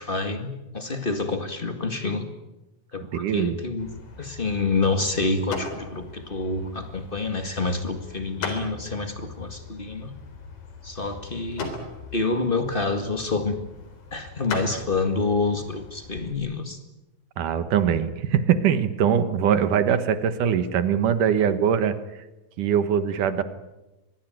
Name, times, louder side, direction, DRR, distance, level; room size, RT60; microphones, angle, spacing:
voice 1, 0.0-2.3 2.9-3.9 4.2-10.2 10.8-11.7 12.1-13.6 14.1-16.8, left 3 dB, 30° left, 7 dB, 1.0 m, -27 dB
voice 2, 3.1-3.6 17.4-22.0 22.6-23.4, right 8 dB, 65° right, 12 dB, 2.6 m, -22 dB
sound 1, 3.8-16.3, left 4 dB, 85° left, 5.5 m, -39 dB
24.0 x 21.5 x 9.2 m, 1.0 s
omnidirectional pair, 4.2 m